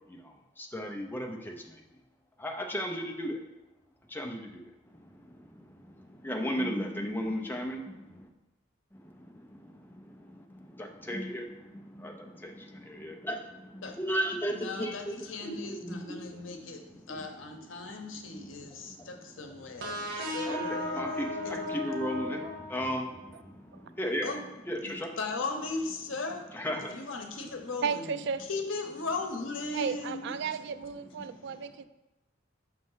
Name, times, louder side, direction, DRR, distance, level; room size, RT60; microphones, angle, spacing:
voice 1, 0.7-1.4 2.4-3.3 4.2-4.4 6.3-7.8 11.1-11.4 13.0-13.3 14.0-14.5 14.8-14.9 15.8-16.0 20.5-21.3 21.8-22.4 22.7-23.0 24.0-24.3 24.7-24.8 26.5-26.9, equal, 10° left, 1 dB, 0.6 m, -32 dB
voice 2, 14.5-21.0 21.4-21.5 24.2-24.4 24.8-26.5 26.9-28.2 28.5-30.3, left 3 dB, 85° left, 4 dB, 0.8 m, -37 dB
sound 1, 19.8-23.3, left 1 dB, 90° right, 1.2 m, -36 dB
voice 3, 27.8-28.4 29.7-31.8, right 6 dB, 65° right, 12 dB, 0.3 m, -34 dB
5.8 x 3.2 x 5.5 m, 1.0 s
head